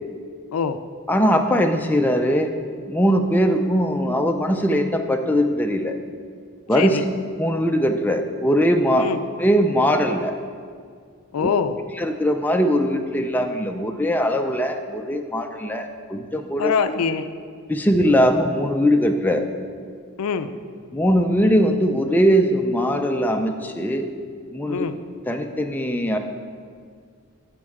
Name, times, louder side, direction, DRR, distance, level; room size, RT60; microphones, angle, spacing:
voice 1, 0.5-0.8 6.8-7.0 9.0-9.2 11.3-11.8 16.6-17.3 20.2-20.6 24.7-25.0, left 6 dB, 80° left, 11 dB, 0.4 m, -23 dB
voice 2, 1.1-2.5 2.9-5.9 6.7-7.0 7.4-9.1 9.4-10.4 11.4-11.5 12.0-16.7 17.7-19.5 20.9-24.1 24.5-24.9 25.3-26.2, equal, 10° left, 4 dB, 0.4 m, -20 dB
11.0 x 5.2 x 3.6 m, 2.1 s
head